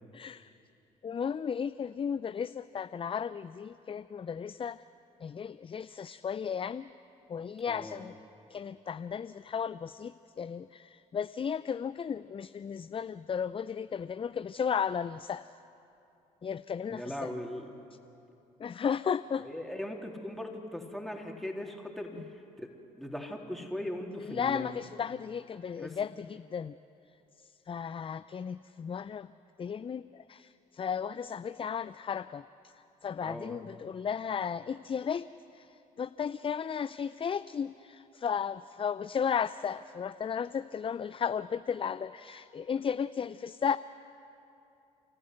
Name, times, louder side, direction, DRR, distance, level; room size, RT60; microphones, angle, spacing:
voice 1, 0.1-0.5 1.0-4.8 5.2-6.9 7.3-8.1 8.5-15.5 16.4-17.3 18.6-19.5 24.2-26.8 27.4-29.3 29.6-35.3 35.5-43.8, left 7 dB, 30° left, 14 dB, 0.4 m, -34 dB
voice 2, 7.7-8.0 16.9-17.7 19.4-22.7 23.0-24.7 25.8-26.0 33.2-33.6, left 1 dB, ahead, 0 dB, 3.5 m, -39 dB
29.0 x 14.5 x 7.9 m, 2.8 s
hypercardioid pair, 50°, 18 cm